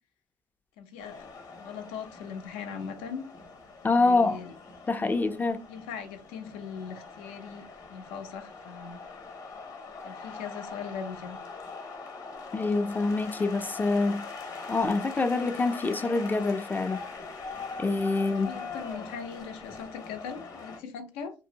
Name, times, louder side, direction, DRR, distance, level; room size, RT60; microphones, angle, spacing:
voice 1, 0.8-1.3 1.6-3.3 4.0-4.5 5.7-9.0 10.0-11.4 18.1-21.3, left 6 dB, 85° left, 0.6 m, -40 dB
sound 1, 1.0-20.8, left 4 dB, 40° left, 0.8 m, -42 dB
voice 2, 3.8-4.4 4.9-5.6 12.5-14.2 14.7-17.0 17.8-18.6, left 3 dB, 20° left, 0.3 m, -26 dB
2.6 x 2.1 x 2.7 m
supercardioid pair, 90°, 10 cm